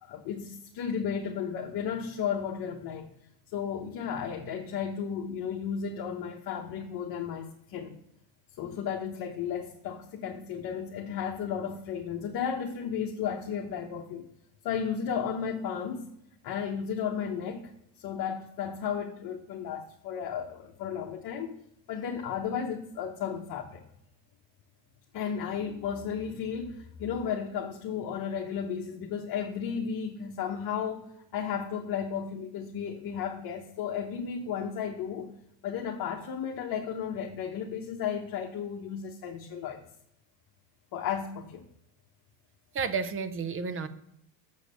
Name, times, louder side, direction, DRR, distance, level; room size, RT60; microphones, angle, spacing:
voice 1, 0.0-3.1 3.5-7.9 8.6-14.3 14.6-16.1 16.4-17.7 18.0-21.5 21.9-23.8 25.1-35.3 35.6-39.8 40.9-41.6, left 7 dB, 45° left, 0 dB, 1.2 m, -34 dB
voice 2, 42.7-43.9, right 5 dB, 25° right, 13 dB, 0.6 m, -31 dB
7.4 x 4.9 x 6.9 m, 0.77 s
supercardioid pair, 115°, 49 cm